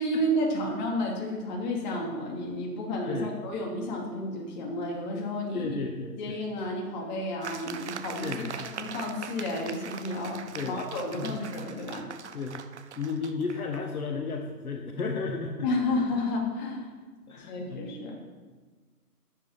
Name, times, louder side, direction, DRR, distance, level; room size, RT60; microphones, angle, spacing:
voice 1, 0.0-5.8 6.2-12.0 15.6-16.9 17.4-18.2, left 1 dB, 30° left, -1 dB, 2.6 m, -31 dB
voice 2, 3.1-3.4 5.5-6.4 8.2-8.7 10.5-10.8 11.1-11.4 12.3-12.6 13.0-15.7 17.3-17.9, left 4 dB, 60° left, 3 dB, 1.6 m, -34 dB
sound 1, 7.4-13.8, right 7 dB, 45° right, 0.8 m, -41 dB
10.5 x 7.7 x 7.4 m, 1.4 s
figure-of-eight pair, 145°, 48 cm